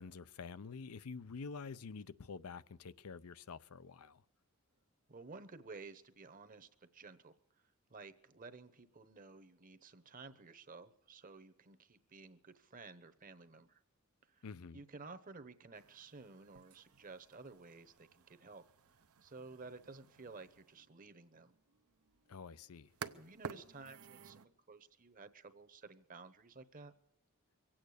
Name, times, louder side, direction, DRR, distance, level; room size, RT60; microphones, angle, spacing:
voice 1, 0.0-4.2 14.4-14.8 22.3-22.9, left 5 dB, 80° left, 0.6 m, -48 dB
voice 2, 5.1-7.3 7.9-13.8 14.3-14.5 14.7-18.6 19.2-21.6 23.1-26.9, right 3 dB, 40° right, 1.0 m, -54 dB
sound 1, 15.7-24.4, right 6 dB, 75° right, 0.8 m, -53 dB
23.5 x 8.8 x 6.5 m
head